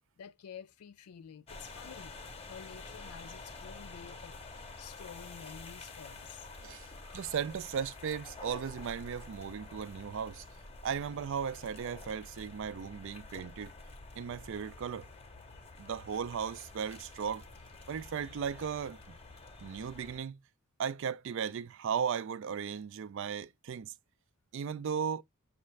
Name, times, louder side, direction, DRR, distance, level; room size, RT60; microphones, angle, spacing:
voice 1, 0.2-2.2 2.5-4.4 4.8-6.5, left 7 dB, 85° left, 0.4 m, -50 dB
sound 1, 1.5-20.2, left 3 dB, 25° left, 0.7 m, -49 dB
voice 2, 7.1-10.4 10.8-13.7 14.2-15.1 15.8-17.4 17.9-19.2 19.6-20.4 20.8-23.9 24.5-25.2, right 7 dB, 60° right, 0.4 m, -36 dB
6.5 x 2.5 x 3.1 m
head